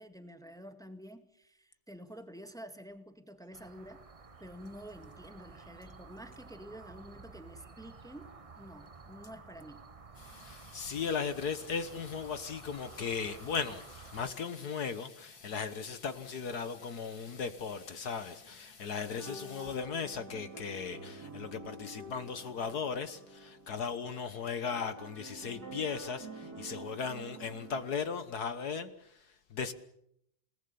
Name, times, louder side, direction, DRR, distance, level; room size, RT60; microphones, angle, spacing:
voice 1, 0.0-4.0 4.4-9.9, equal, ahead, 1.8 m, -49 dB
sound 1, 3.5-14.3, right 4 dB, 30° right, 0.6 m, -52 dB
Water tap faucet / Sink (filling or washing), 10.1-21.0, left 4 dB, 85° left, 3.5 m, -56 dB
voice 2, 10.3-29.7, left 6 dB, 60° left, 1.7 m, -37 dB
sound 2, 19.2-27.8, right 2 dB, 55° right, 2.9 m, -48 dB
28.5 x 19.0 x 7.0 m
omnidirectional pair, 2.0 m